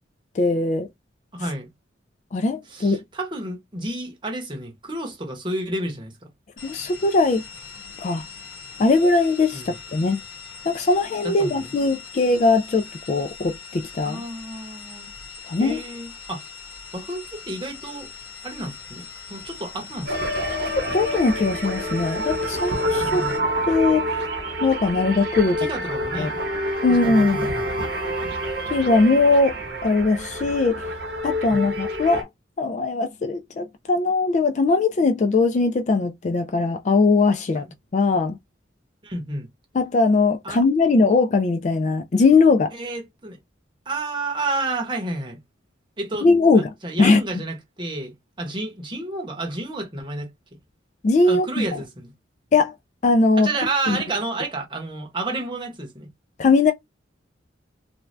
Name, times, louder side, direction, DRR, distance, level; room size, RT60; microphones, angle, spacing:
voice 1, 0.4-0.9 2.3-3.0 6.6-7.4 8.0-8.2 8.8-10.2 10.7-14.2 15.5-15.8 20.7-23.2 23.7-24.2 24.6-25.6 26.2-26.3 26.8-27.5 28.7-29.5 29.8-30.8 31.2-32.3 32.6-37.7 37.9-38.4 39.7-42.7 46.2-46.7 47.0-47.2 51.0-51.8 52.5-52.7 53.0-53.5 53.9-54.0 56.4-56.7, left 3 dB, 35° left, 0.3 m, -20 dB
voice 2, 1.3-1.7 2.7-6.1 9.5-9.8 11.2-11.7 14.0-15.1 15.6-16.5 16.9-18.1 18.4-20.3 23.0-23.5 25.6-26.4 26.9-27.9 31.5-31.7 39.0-39.5 40.4-40.6 42.7-43.4 43.9-45.4 46.0-46.3 46.5-50.3 51.2-52.1 53.4-56.1, right 2 dB, 25° right, 0.9 m, -31 dB
sound 1, 6.6-23.4, left 5 dB, 70° left, 1.1 m, -41 dB
sound 2, 20.1-32.2, equal, 55° right, 0.9 m, -27 dB
2.6 x 2.2 x 3.2 m
head